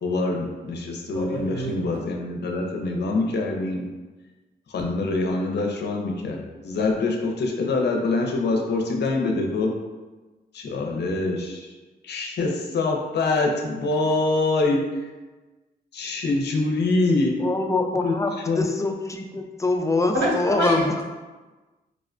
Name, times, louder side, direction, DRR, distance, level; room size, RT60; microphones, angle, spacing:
voice 1, 0.0-3.9 4.7-6.4 6.6-9.7 10.5-11.7 12.0-15.1 15.9-17.4 18.0-18.2 18.4-18.7, left 2 dB, 65° left, 1 dB, 0.6 m, -25 dB
voice 2, 1.1-1.7 20.1-21.0, equal, 85° right, -5 dB, 1.1 m, -25 dB
voice 3, 17.4-21.0, left 3 dB, 15° left, 4 dB, 0.4 m, -24 dB
4.8 x 2.1 x 2.5 m, 1.2 s
cardioid pair, 65°, 19 cm